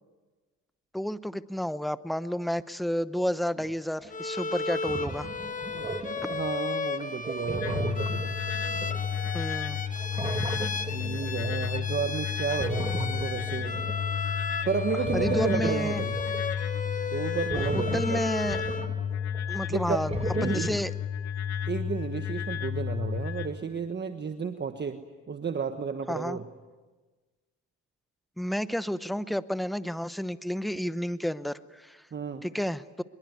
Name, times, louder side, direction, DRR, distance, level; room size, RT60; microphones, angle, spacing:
voice 1, 0.9-5.3 6.2-6.3 9.3-9.8 15.1-16.0 17.5-17.6 17.9-18.6 19.5-20.1 20.4-20.9 26.1-26.4 28.4-32.0 32.4-33.0, equal, ahead, 13 dB, 0.9 m, -31 dB
sound 1, 4.0-4.1 4.5-6.5 7.0-9.7 9.9-11.7 12.4-14.2 14.9-19.6 19.8-20.8, right 3 dB, 20° right, 1.5 m, -37 dB
Bowed string instrument, 4.1-19.0, left 4 dB, 25° left, 1.7 m, -34 dB
voice 2, 6.3-8.4 10.5-13.8 14.6-16.2 17.1-18.2 19.7-20.0 20.3-20.7 21.7-25.0 25.3-26.5 32.1-32.5, right 6 dB, 35° right, 7 dB, 1.4 m, -32 dB
sound 2, 7.6-23.5, left 8 dB, 65° left, 2.3 m, -32 dB
24.5 x 22.5 x 9.5 m, 1.3 s
cardioid pair, 90°, 30 cm